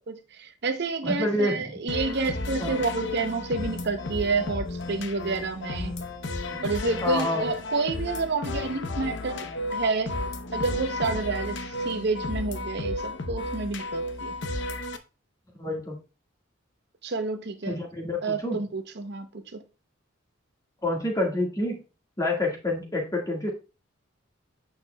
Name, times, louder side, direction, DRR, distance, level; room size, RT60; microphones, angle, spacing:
voice 1, 0.1-5.9 6.6-10.2 10.5-14.4 17.0-17.8 18.2-19.6, right 4 dB, 55° right, 0.7 m, -29 dB
voice 2, 1.0-1.6 2.6-2.8 6.5-6.6 7.0-7.5 15.6-16.0 17.7-18.6 20.8-21.8 22.2-23.5, left 1 dB, 20° left, 1.7 m, -27 dB
sound 1, 1.9-15.0, left 2 dB, 60° left, 0.8 m, -33 dB
8.8 x 6.5 x 2.2 m
head